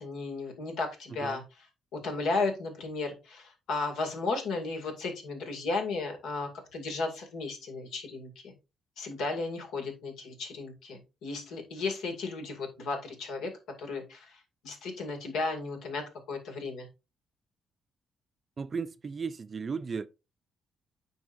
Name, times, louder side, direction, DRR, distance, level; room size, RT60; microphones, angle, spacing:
voice 1, 0.0-1.7 1.9-8.5 9.0-13.5 13.8-16.9, left 3 dB, 85° left, 2.3 m, -34 dB
voice 2, 18.6-20.1, right 5 dB, 40° right, 0.5 m, -35 dB
9.3 x 5.4 x 2.6 m
cardioid pair, 90°, 0 cm